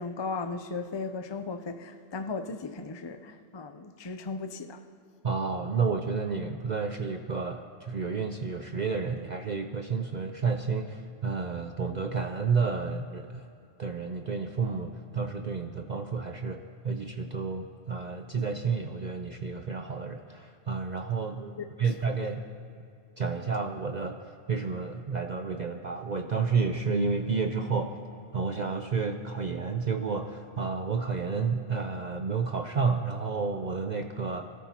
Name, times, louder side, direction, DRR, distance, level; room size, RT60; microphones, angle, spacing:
voice 1, 0.0-4.8 21.6-21.9, left 4 dB, 35° left, 0.4 m, -36 dB
voice 2, 5.2-13.5 13.8-22.4 23.2-24.2 24.5-28.0 28.3-34.5, right 5 dB, 50° right, 0.6 m, -31 dB
25.0 x 13.0 x 2.9 m
omnidirectional pair, 1.2 m